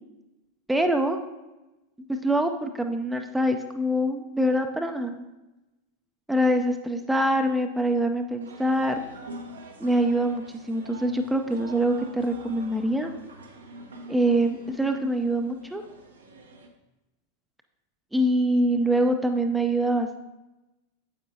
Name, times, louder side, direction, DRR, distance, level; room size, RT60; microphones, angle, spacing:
voice 1, 0.7-1.2 2.1-5.2 6.3-9.0 9.8-13.1 14.1-15.8 18.1-20.2, right 1 dB, 5° right, 5 dB, 0.6 m, -24 dB
sound 1, 8.4-16.7, right 1 dB, 70° right, 1.0 m, -44 dB
9.2 x 7.7 x 2.8 m, 1.0 s
figure-of-eight pair, 90°, 0 cm